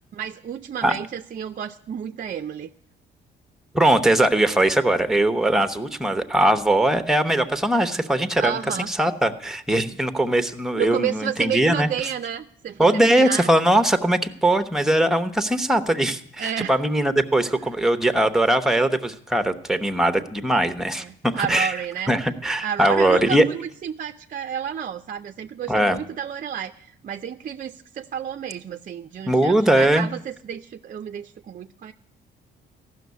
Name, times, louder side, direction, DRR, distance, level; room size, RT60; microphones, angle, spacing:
voice 1, 0.1-2.7 8.4-8.9 10.8-13.5 16.4-16.7 21.0-22.1 22.6-31.9, right 9 dB, 45° right, 8 dB, 0.5 m, -31 dB
voice 2, 3.7-11.9 12.8-21.7 22.1-23.4 25.7-26.0 29.3-30.1, right 1 dB, ahead, 10 dB, 0.9 m, -20 dB
14.5 x 6.3 x 9.4 m, 0.70 s
cardioid pair, 90°, 20 cm